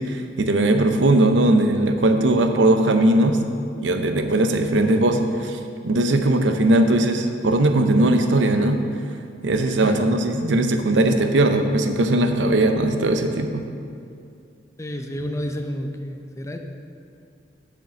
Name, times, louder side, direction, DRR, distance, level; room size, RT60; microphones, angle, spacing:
voice 1, 0.0-3.4 3.8-5.6 5.8-8.8 9.4-13.6, right 1 dB, 85° right, 6 dB, 0.7 m, -19 dB
voice 2, 9.8-10.2 14.8-16.6, equal, 15° left, 4 dB, 0.5 m, -30 dB
7.5 x 5.0 x 6.9 m, 2.4 s
head